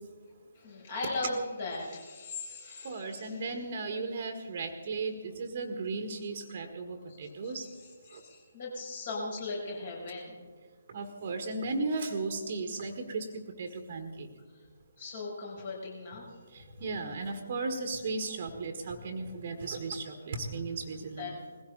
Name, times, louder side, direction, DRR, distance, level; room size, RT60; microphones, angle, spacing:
voice 1, 0.6-3.5 7.1-10.4 15.0-16.3 20.9-21.4, left 3 dB, 45° left, -3 dB, 7.0 m, -39 dB
voice 2, 2.8-7.6 8.1-8.2 10.9-13.3 13.6-14.3 16.8-21.3, right 3 dB, 40° right, 6 dB, 1.7 m, -35 dB
20.5 x 16.5 x 4.0 m, 1.4 s
figure-of-eight pair, 140°, 0 cm